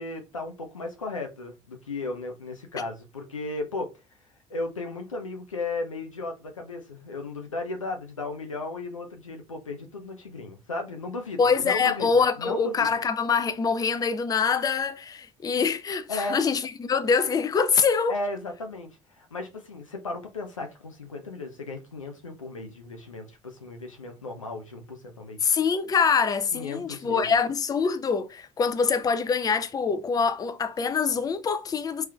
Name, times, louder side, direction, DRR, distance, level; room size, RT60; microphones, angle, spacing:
voice 1, 0.0-3.9 4.5-12.1 12.4-12.9 16.1-16.4 18.1-25.4 26.5-27.3, left 3 dB, 90° left, 0.5 m, -35 dB
voice 2, 11.4-18.2 25.4-32.0, left 5 dB, 25° left, 0.4 m, -24 dB
3.1 x 3.0 x 2.4 m
figure-of-eight pair, 55°, 16 cm